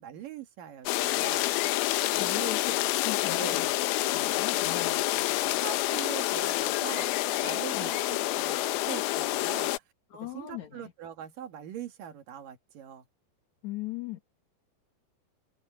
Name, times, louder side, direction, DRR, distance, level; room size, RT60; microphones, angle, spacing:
voice 1, 0.0-1.4 2.1-2.6 3.3-3.6 5.4-7.1 7.4-9.7 10.2-13.1, right 10 dB, 60° right, 2.8 m, -42 dB
sound 1, 0.9-9.8, left 17 dB, 85° left, 2.2 m, -28 dB
voice 2, 2.2-3.7 4.0-5.7 7.7-7.9 10.1-10.9 13.6-14.2, left 12 dB, 50° left, 2.6 m, -39 dB
omnidirectional pair, 5.2 m